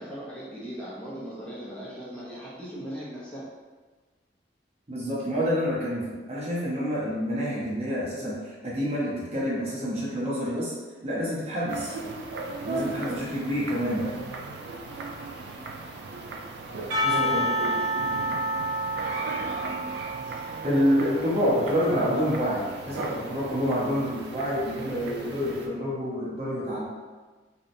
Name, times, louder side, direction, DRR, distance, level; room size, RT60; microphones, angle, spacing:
voice 1, 0.0-3.5 17.1-17.8, equal, 5° left, -8 dB, 0.5 m, -38 dB
voice 2, 4.9-10.7 11.0-12.0 12.6-14.1 17.0-17.5 20.6-26.8, equal, 35° right, -7 dB, 0.7 m, -27 dB
sound 1, 11.7-25.7, right 3 dB, 65° right, 0.3 m, -37 dB
Percussion / Church bell, 16.9-21.9, equal, 90° right, 0.7 m, -29 dB
2.8 x 2.0 x 2.5 m, 1.3 s
head